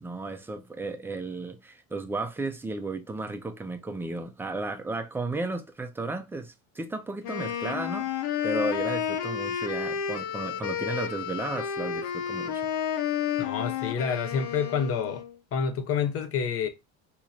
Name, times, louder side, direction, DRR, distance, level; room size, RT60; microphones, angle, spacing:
voice 1, 0.0-8.1 8.4-12.7, right 2 dB, 5° right, 0.3 m, -34 dB
Wind instrument woodwind instrument, 7.2-15.3, left 8 dB, 70° left, 0.9 m, -31 dB
voice 2, 13.4-15.2 15.5-16.7, left 6 dB, 40° left, 0.7 m, -28 dB
2.9 x 2.6 x 4.2 m
supercardioid pair, 120°, 37 cm